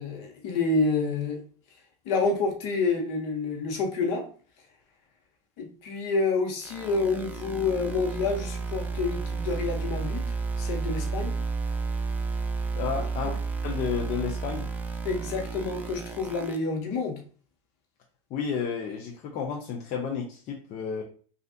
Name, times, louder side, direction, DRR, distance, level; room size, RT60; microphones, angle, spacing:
voice 1, 0.0-1.4 2.0-4.2 5.6-10.2 10.6-11.4 13.2-13.3 15.0-17.2, left 3 dB, 65° left, 2 dB, 1.0 m, -28 dB
sound 1, 6.6-16.6, right 4 dB, 10° right, 0.5 m, -32 dB
voice 2, 12.8-14.7 18.3-21.0, left 6 dB, 45° left, 0 dB, 0.6 m, -32 dB
3.2 x 2.5 x 2.6 m, 0.41 s
hypercardioid pair, 95°, 17 cm